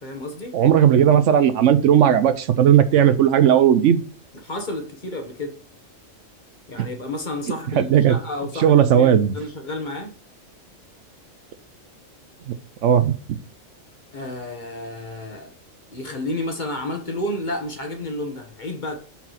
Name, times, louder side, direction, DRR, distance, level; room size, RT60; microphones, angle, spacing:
voice 1, 0.0-0.5 4.4-5.5 6.7-9.1 9.3-10.1 14.1-15.5 15.9-19.0, left 1 dB, 40° left, 1.3 m, -31 dB
voice 2, 0.5-4.0 7.7-8.2 8.6-9.3 12.5-12.6 12.8-13.4, right 9 dB, 70° right, 0.9 m, -16 dB
5.7 x 4.7 x 5.6 m
omnidirectional pair, 1.4 m